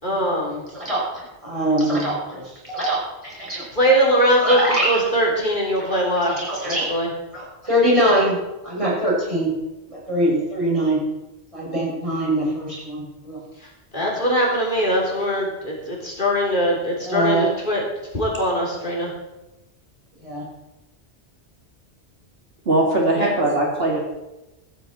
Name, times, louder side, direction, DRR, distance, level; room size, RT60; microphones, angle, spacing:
voice 1, 0.0-0.6 3.7-6.3 6.6-7.1 13.9-17.8 18.1-19.1 23.2-23.3, equal, 45° left, -3 dB, 3.7 m, -21 dB
voice 2, 1.4-3.6 4.4-5.0 5.8-6.9 7.3-8.4 8.6-9.5 10.1-11.0 11.5-13.4 17.0-17.5 20.2-20.4, right 1 dB, 30° right, -5 dB, 5.9 m, -23 dB
voice 3, 22.7-24.0, right 1 dB, 55° right, -1 dB, 2.6 m, -20 dB
15.5 x 13.5 x 4.3 m, 0.98 s
omnidirectional pair, 1.2 m